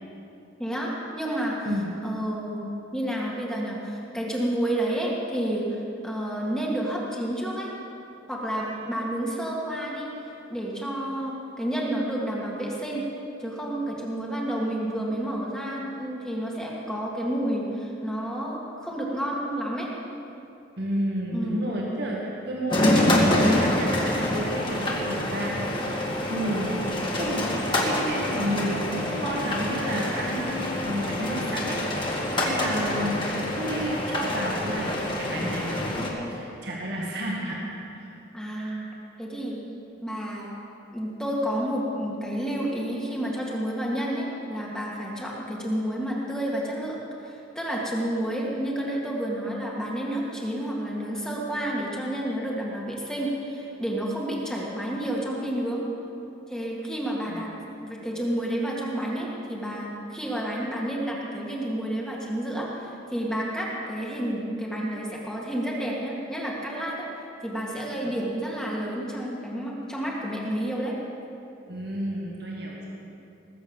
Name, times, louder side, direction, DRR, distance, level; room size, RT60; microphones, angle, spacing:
voice 1, 0.6-1.7 2.0-2.6 2.9-7.7 8.3-10.1 10.5-13.1 13.4-19.9 21.3-21.7 38.3-38.9 39.2-39.5 40.0-40.5 40.9-47.0 47.2-55.8 56.5-57.5 57.8-67.1 67.4-71.0, right 1 dB, 5° left, -4 dB, 1.8 m, -30 dB
voice 2, 20.8-34.9 35.2-37.7 37.9-38.1 57.3-57.4 68.0-68.2 71.7-72.9, equal, 60° right, -3 dB, 1.9 m, -31 dB
sound 1, 22.7-36.1, left 1 dB, 25° left, 1.9 m, -26 dB
19.5 x 7.9 x 7.2 m, 2.8 s
head